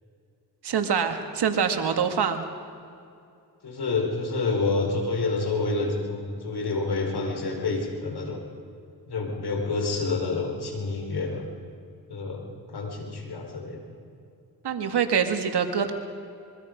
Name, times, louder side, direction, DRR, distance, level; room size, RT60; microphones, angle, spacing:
voice 1, 0.6-2.4 14.6-15.9, right 7 dB, 85° right, 6 dB, 2.0 m, -25 dB
voice 2, 3.6-8.4 9.1-11.5 12.1-13.8, left 3 dB, 75° left, 2 dB, 4.5 m, -28 dB
25.5 x 23.0 x 5.2 m, 2.5 s
cardioid pair, 50°, 39 cm